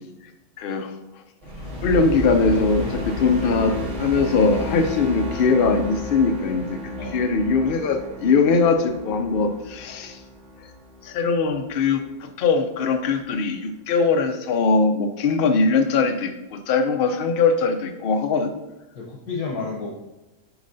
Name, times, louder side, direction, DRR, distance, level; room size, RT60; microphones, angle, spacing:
voice 1, 0.6-0.9 1.8-6.8 7.1-10.2 11.0-18.5, left 4 dB, 55° left, 6 dB, 0.7 m, -21 dB
sound 1, 1.4-11.9, left 1 dB, 60° right, 1.8 m, -33 dB
voice 2, 7.0-7.3 18.9-20.0, left 4 dB, 90° left, -3 dB, 1.4 m, -31 dB
7.1 x 5.4 x 2.6 m, 1.0 s
omnidirectional pair, 1.5 m